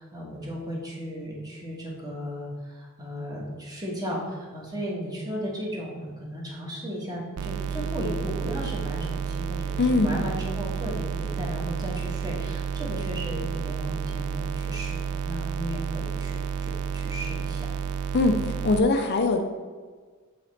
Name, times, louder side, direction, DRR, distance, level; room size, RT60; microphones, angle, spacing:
voice 1, 0.0-17.7, equal, 20° right, -4 dB, 1.4 m, -35 dB
sound 1, 7.4-18.8, right 7 dB, 70° right, 0.3 m, -31 dB
voice 2, 9.8-10.1 18.1-18.4 18.6-19.4, left 3 dB, 50° left, 5 dB, 0.5 m, -21 dB
7.5 x 4.0 x 3.3 m, 1.5 s
head